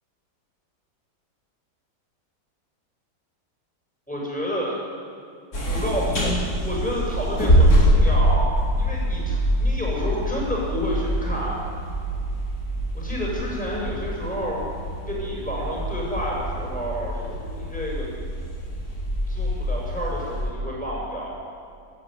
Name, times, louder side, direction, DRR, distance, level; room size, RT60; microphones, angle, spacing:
voice 1, 4.1-4.8 5.7-6.3 6.6-8.5 8.8-11.5 12.9-14.6 15.1-18.1 19.3-21.4, equal, 5° left, -4 dB, 7.7 m, -30 dB
sound 1, 5.5-20.5, equal, 55° left, 4.0 m, -24 dB
22.0 x 14.0 x 9.5 m, 2.3 s
omnidirectional pair, 1.9 m